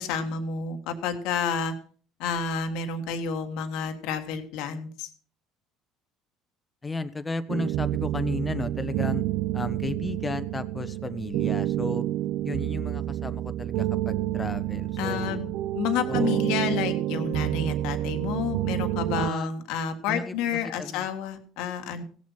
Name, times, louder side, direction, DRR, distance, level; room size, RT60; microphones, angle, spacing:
voice 1, 0.0-1.7 2.2-5.1 15.0-15.5 15.7-22.0, left 6 dB, 75° left, 6 dB, 1.6 m, -30 dB
voice 2, 6.8-9.2 9.5-12.0 12.4-15.4 16.1-16.4 19.2-19.5 20.1-20.3 20.8-21.1, left 3 dB, 25° left, 11 dB, 1.2 m, -34 dB
sound 1, 7.5-19.3, right 14 dB, 70° right, 0.5 m, -28 dB
16.5 x 7.4 x 5.7 m, 0.43 s
supercardioid pair, 75°, 0 cm